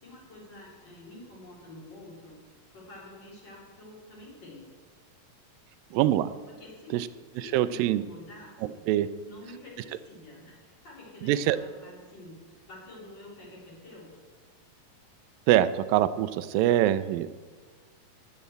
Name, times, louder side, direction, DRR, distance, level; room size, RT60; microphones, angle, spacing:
voice 1, 0.0-2.4 2.7-4.7 6.5-7.1 7.4-8.8 9.2-14.1, left 1 dB, 30° left, -5 dB, 4.0 m, -48 dB
voice 2, 5.9-6.3 6.9-7.0 7.5-8.0 8.9-9.1 11.2-11.6 15.5-17.3, right 13 dB, 85° right, 13 dB, 2.3 m, -23 dB
13.0 x 8.3 x 7.8 m, 1.4 s
omnidirectional pair, 4.0 m